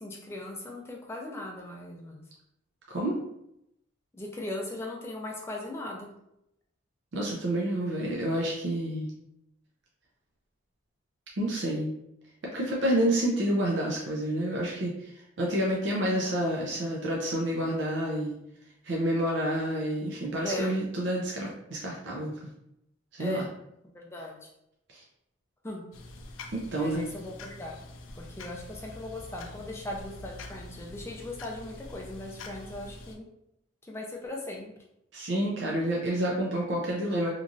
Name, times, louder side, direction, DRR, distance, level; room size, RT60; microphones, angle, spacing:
voice 1, 0.0-2.2 4.1-6.1 20.4-20.7 23.2-23.5 23.9-24.4 25.6-25.8 26.7-27.8 28.2-33.2 33.9-34.7, left 1 dB, 15° left, -1 dB, 0.4 m, -38 dB
voice 2, 7.1-9.1 11.4-11.9 12.5-18.4 18.8-22.4 23.1-23.5 24.9-25.0 26.5-27.0 35.1-37.3, right 1 dB, 65° right, -2 dB, 0.5 m, -29 dB
sound 1, 25.9-33.2, left 2 dB, 90° left, 0.4 m, -45 dB
3.0 x 2.4 x 2.5 m, 0.80 s
head